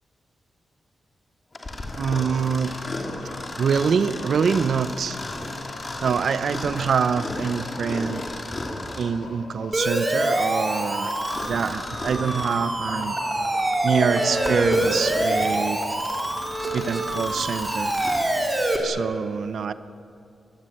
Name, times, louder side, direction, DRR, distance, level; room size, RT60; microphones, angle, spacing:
Mechanisms, 1.5-9.2 11.0-12.6 13.2-13.3 14.0-18.4, left 2 dB, 25° left, 3.0 m, -35 dB
sound 1, 2.0-16.1, left 2 dB, 85° left, 5.5 m, -43 dB
voice 1, 2.0-2.7 3.6-5.2 6.0-8.2 9.0-11.1 11.4-13.2 13.8-15.8 16.7-17.9 18.8-19.7, right 6 dB, 55° right, 13 dB, 0.8 m, -25 dB
Siren, 9.7-18.8, right 1 dB, 15° right, 3.0 m, -25 dB
24.5 x 20.5 x 9.0 m, 2.5 s
wide cardioid pair, 180°, 0 cm